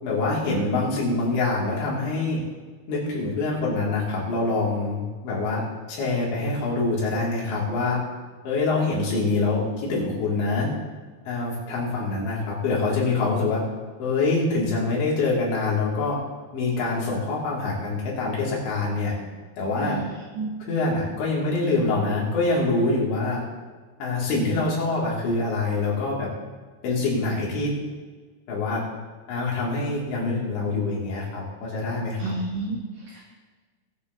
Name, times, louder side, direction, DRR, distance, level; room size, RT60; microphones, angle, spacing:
voice 1, 0.0-2.4 2.9-5.6 5.9-8.0 8.4-10.7 11.3-13.6 14.0-16.2 16.5-19.1 19.6-20.0 20.7-23.4 24.0-26.3 26.8-27.7 28.5-28.8 29.3-32.4, left 3 dB, 80° left, -5 dB, 5.6 m, -25 dB
voice 2, 19.8-20.5 32.2-32.8 33.1-33.2, right 3 dB, 55° right, -3 dB, 2.6 m, -30 dB
21.0 x 8.1 x 4.1 m, 1.4 s
omnidirectional pair, 5.1 m